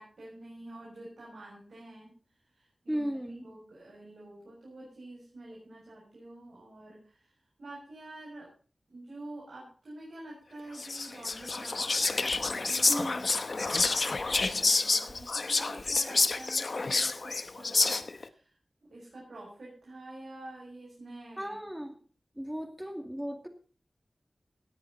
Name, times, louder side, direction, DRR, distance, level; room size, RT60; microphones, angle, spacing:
voice 1, 0.0-2.1 2.5-3.1 3.4-7.3 7.6-8.5 8.9-13.1 13.6-18.6 18.9-21.6, right 2 dB, 85° right, -4 dB, 6.2 m, -48 dB
voice 2, 2.9-3.5 12.9-13.2 21.4-22.0 22.4-23.5, equal, 10° right, 5 dB, 2.3 m, -35 dB
Whispering, 10.8-18.2, left 3 dB, 65° left, 0.9 m, -28 dB
18.0 x 10.5 x 4.0 m, 0.39 s
wide cardioid pair, 65°, 0 cm